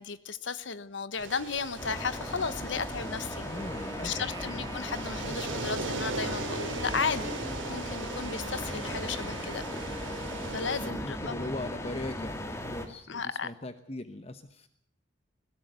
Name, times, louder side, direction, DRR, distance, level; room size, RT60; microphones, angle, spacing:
voice 1, 0.0-3.5 4.0-7.3 7.7-10.0 10.5-11.5 13.1-13.5, left 5 dB, 70° left, 15 dB, 1.1 m, -34 dB
sound 1, 1.2-10.9, right 3 dB, 80° right, 2.9 m, -40 dB
sound 2, 1.8-12.9, left 1 dB, 15° left, 2.2 m, -38 dB
voice 2, 3.4-4.7 10.7-14.7, left 1 dB, 30° left, 9 dB, 1.0 m, -40 dB
Wind instrument woodwind instrument, 3.5-11.2, right 1 dB, 20° right, 2.3 m, -44 dB
21.0 x 16.0 x 8.1 m, 0.67 s
head